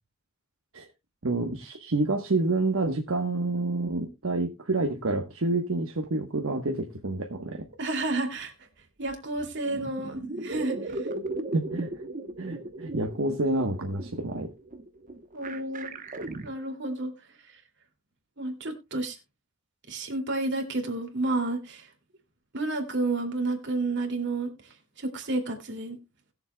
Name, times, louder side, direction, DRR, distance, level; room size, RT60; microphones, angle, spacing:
voice 1, 1.2-7.6 11.5-11.9 12.4-14.5, right 2 dB, 70° right, 3 dB, 1.2 m, -28 dB
voice 2, 7.8-8.5 9.0-11.1 15.3-15.9 16.4-17.1 17.5-17.6 18.4-19.2 19.9-21.9 22.5-24.5 25.0-26.0, right 2 dB, 55° right, 4 dB, 2.5 m, -30 dB
sound 1, 9.1-9.2 9.4-16.5, right 2 dB, 40° right, 0.9 m, -37 dB
20.5 x 7.1 x 2.2 m, 0.24 s
head